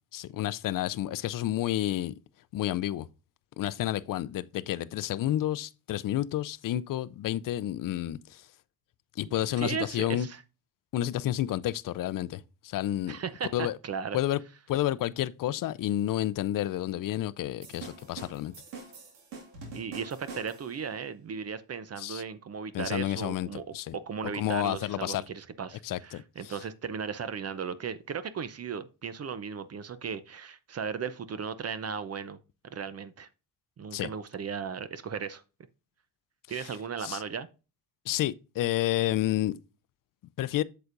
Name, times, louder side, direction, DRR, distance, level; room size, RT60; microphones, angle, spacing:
voice 1, 0.1-2.1 2.5-3.1 3.6-8.4 9.2-10.3 10.9-13.2 13.5-13.8 14.1-14.4 14.7-18.5 22.0-22.2 22.7-24.0 24.3-25.2 25.8-26.2 33.9-34.1 37.0-37.2 38.1-39.6 40.4-40.6, left 13 dB, 50° left, 0.5 m, -30 dB
voice 2, 9.6-10.4 13.1-14.2 19.7-23.6 23.9-32.4 32.7-33.3 33.8-35.4 36.5-37.5, right 6 dB, 35° right, 0.7 m, -36 dB
sound 1, 17.6-20.8, right 3 dB, 90° right, 2.1 m, -45 dB
7.9 x 6.8 x 2.5 m
supercardioid pair, 75°, 41 cm